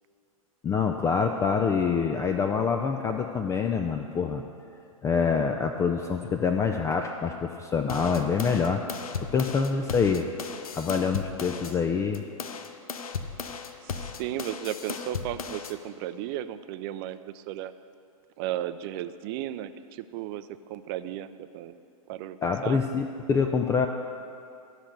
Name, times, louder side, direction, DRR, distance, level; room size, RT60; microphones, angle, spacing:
voice 1, 0.6-4.4 5.0-8.8 9.2-10.3 10.7-12.2 22.4-23.9, left 5 dB, 15° left, 5 dB, 0.4 m, -26 dB
sound 1, 7.9-11.8 12.1-15.8, left 5 dB, 75° left, 0.7 m, -36 dB
voice 2, 13.8-17.7 18.4-21.8 22.1-22.8, right 12 dB, 40° right, 13 dB, 0.5 m, -35 dB
12.5 x 6.1 x 6.6 m, 2.5 s
hypercardioid pair, 110°, 19 cm